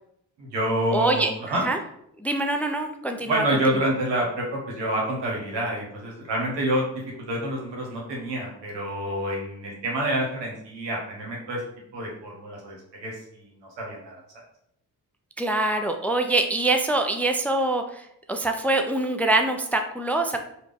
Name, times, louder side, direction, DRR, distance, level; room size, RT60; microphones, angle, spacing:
voice 1, 0.4-1.6 3.3-6.9 7.2-11.6 11.9-13.5 13.8-14.2, right 1 dB, 85° right, -2 dB, 1.0 m, -28 dB
voice 2, 0.9-1.3 1.6-1.8 2.2-3.4 15.4-20.4, right 2 dB, 5° left, 5 dB, 0.3 m, -24 dB
3.4 x 2.4 x 3.4 m, 0.74 s
supercardioid pair, 45°, 42 cm